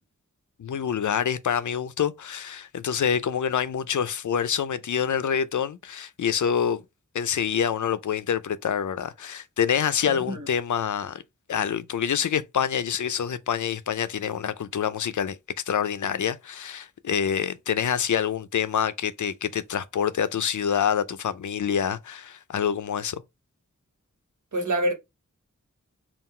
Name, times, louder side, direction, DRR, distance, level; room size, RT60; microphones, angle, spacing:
voice 1, 0.6-6.8 7.1-11.2 11.5-15.4 15.7-23.2, left 8 dB, 75° left, 0.5 m, -26 dB
voice 2, 10.0-10.5 24.5-24.9, right 1 dB, 75° right, 1.3 m, -26 dB
3.8 x 2.4 x 4.2 m
wide cardioid pair, 80°, 30 cm